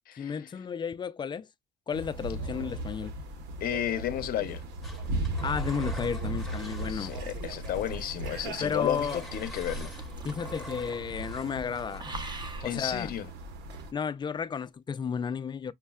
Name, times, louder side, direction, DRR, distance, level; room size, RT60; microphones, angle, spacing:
voice 1, 0.2-1.5 1.9-3.1 5.4-7.1 8.6-9.2 10.2-12.1 12.6-13.2 13.9-15.7, left 6 dB, 25° left, 0.4 m, -33 dB
sound 1, 1.9-13.9, right 2 dB, 90° right, 1.0 m, -37 dB
voice 2, 3.6-4.6 6.9-9.9 12.6-13.3, left 11 dB, 60° left, 0.7 m, -32 dB
Engine, 4.8-7.3 7.6-12.0, left 1 dB, ahead, 1.0 m, -47 dB
sound 2, 5.4-11.1 11.4-11.6 12.0-12.8 13.7-13.9, right 2 dB, 25° right, 0.9 m, -46 dB
6.2 x 2.2 x 2.3 m
cardioid pair, 110°, 17 cm